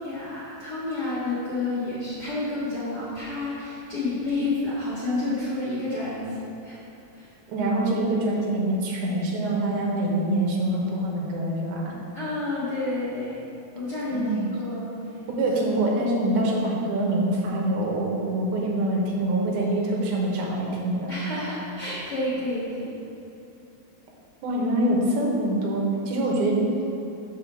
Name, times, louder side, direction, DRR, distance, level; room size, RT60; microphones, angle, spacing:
voice 1, 0.0-6.4 6.6-6.8 7.1-7.3 12.1-13.4 13.7-15.2 21.1-22.9, left 2 dB, 55° left, -10 dB, 1.1 m, -30 dB
voice 2, 7.5-11.9 14.1-14.5 15.3-21.1 24.4-26.6, right 1 dB, 65° right, -2 dB, 2.3 m, -25 dB
5.6 x 5.6 x 6.1 m, 2.8 s
omnidirectional pair, 4.1 m